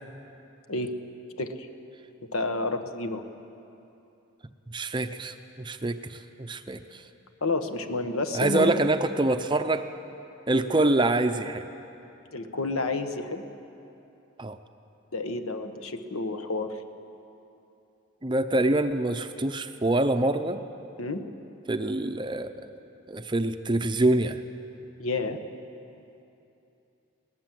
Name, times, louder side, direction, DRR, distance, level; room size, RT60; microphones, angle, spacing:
voice 1, 2.3-3.2 7.4-8.8 12.3-13.4 15.1-16.7 21.0-21.2 25.0-25.4, left 2 dB, 75° left, 7 dB, 1.3 m, -30 dB
voice 2, 4.7-7.0 8.3-9.9 10.5-11.6 14.4-14.6 18.2-20.6 21.7-22.7 23.1-24.4, right 2 dB, 20° right, 8 dB, 0.6 m, -25 dB
21.0 x 19.0 x 7.7 m, 2.8 s
head